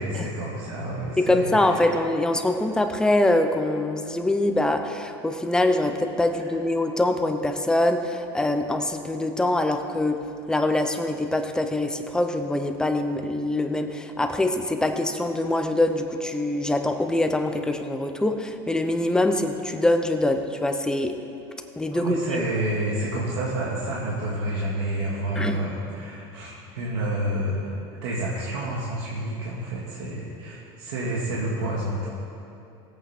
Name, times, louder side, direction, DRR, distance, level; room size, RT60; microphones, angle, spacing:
voice 1, 0.0-2.0 6.4-6.5 21.9-27.7 28.0-32.1, right 1 dB, 90° right, -6 dB, 2.2 m, -29 dB
voice 2, 1.2-10.2 10.5-21.1 21.8-22.2 25.4-25.6, left 1 dB, 5° left, 6 dB, 0.6 m, -24 dB
19.0 x 8.5 x 4.4 m, 2.7 s
cardioid pair, 160°, 13 cm